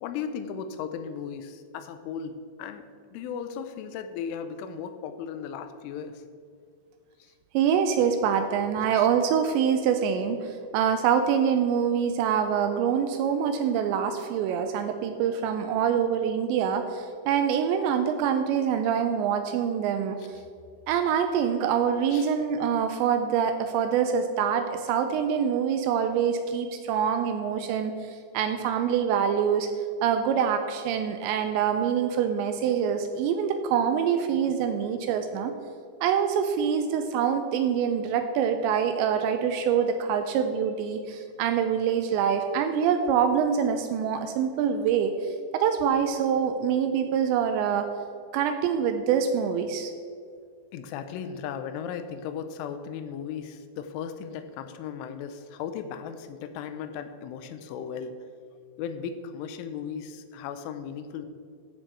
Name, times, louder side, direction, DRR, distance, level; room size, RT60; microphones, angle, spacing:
voice 1, 0.0-2.8 3.1-6.2 9.0-9.1 22.1-22.3 50.7-58.1 58.8-61.3, left 7 dB, 90° left, 9 dB, 3.2 m, -36 dB
voice 2, 7.5-20.2 20.9-29.7 30.0-35.5 36.0-47.9 48.3-49.9, right 7 dB, 85° right, 7 dB, 2.7 m, -25 dB
14.0 x 6.6 x 4.6 m, 2.2 s
omnidirectional pair, 5.5 m